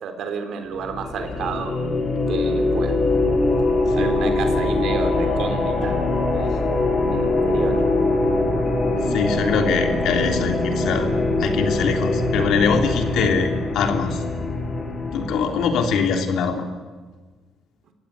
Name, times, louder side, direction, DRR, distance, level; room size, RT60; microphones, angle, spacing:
voice 1, 0.0-1.8 2.3-3.0 4.0-6.7 7.1-7.8, right 5 dB, 75° right, 6 dB, 3.6 m, -31 dB
sound 1, 0.8-16.2, left 2 dB, 45° left, 6.5 m, -22 dB
voice 2, 9.1-11.1 11.4-14.2 15.1-16.6, left 5 dB, 80° left, 5 dB, 3.1 m, -23 dB
27.0 x 16.0 x 9.7 m, 1.4 s
cardioid pair, 90°, 0 cm